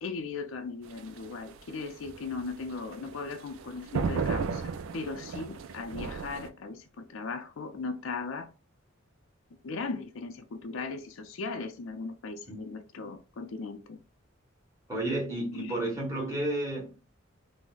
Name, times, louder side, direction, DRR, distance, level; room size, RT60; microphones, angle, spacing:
voice 1, 0.0-8.5 9.6-14.0 15.5-15.8, left 4 dB, 70° left, 0.4 m, -38 dB
sound 1, 0.8-6.5, right 5 dB, 75° right, 0.3 m, -35 dB
voice 2, 14.9-17.1, right 1 dB, 15° right, 1.2 m, -32 dB
3.7 x 2.0 x 2.4 m
head